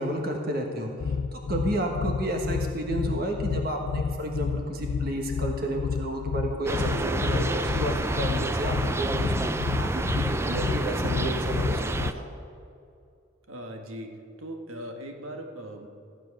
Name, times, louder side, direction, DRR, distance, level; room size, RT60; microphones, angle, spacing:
voice 1, 0.0-12.3, right 1 dB, 45° right, 2 dB, 1.3 m, -31 dB
sound 1, 1.0-12.1, left 5 dB, 65° left, 0.4 m, -30 dB
sound 2, 6.7-12.1, right 2 dB, 15° right, 0.3 m, -29 dB
voice 2, 13.5-14.1 14.4-15.9, equal, 85° right, 3 dB, 1.4 m, -39 dB
14.5 x 9.1 x 6.0 m, 2.5 s
head